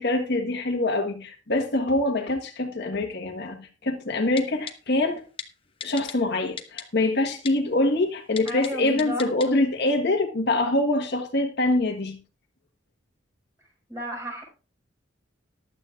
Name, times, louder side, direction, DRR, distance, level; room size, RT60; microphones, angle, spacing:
voice 1, 0.0-5.2 5.8-12.2, left 2 dB, 60° left, 1.5 m, -24 dB
Typing, 4.4-4.7 5.4-5.5 5.8-6.1 6.6-6.8 7.4-7.5 8.4-8.7 9.0-9.5 9.8-9.9, left 6 dB, 30° left, 1.1 m, -35 dB
voice 2, 8.5-9.3 13.9-14.4, equal, 15° right, 5.5 m, -32 dB
15.0 x 11.5 x 2.5 m
head